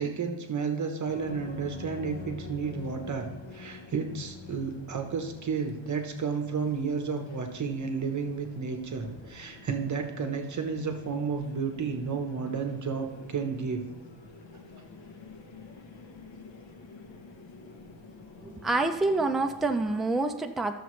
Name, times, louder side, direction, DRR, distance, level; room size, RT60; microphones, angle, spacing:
voice 1, 0.0-13.8, right 5 dB, 40° right, 5 dB, 1.0 m, -32 dB
sound 1, 1.1-20.0, left 4 dB, 90° left, 1.2 m, -47 dB
voice 2, 18.4-20.8, right 2 dB, ahead, 4 dB, 0.4 m, -27 dB
12.5 x 6.9 x 3.2 m, 1.0 s
wide cardioid pair, 145°, 44 cm